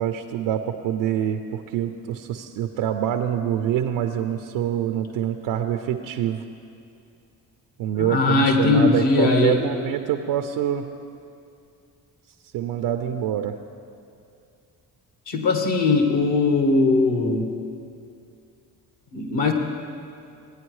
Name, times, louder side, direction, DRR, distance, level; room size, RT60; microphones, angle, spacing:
voice 1, 0.0-6.4 7.8-10.9 12.5-13.6, right 10 dB, 80° right, 6 dB, 0.6 m, -25 dB
voice 2, 8.0-9.6 15.3-17.5 19.1-19.5, left 3 dB, 65° left, 3 dB, 1.5 m, -20 dB
16.5 x 9.5 x 3.2 m, 2.5 s
supercardioid pair, 55°, 44 cm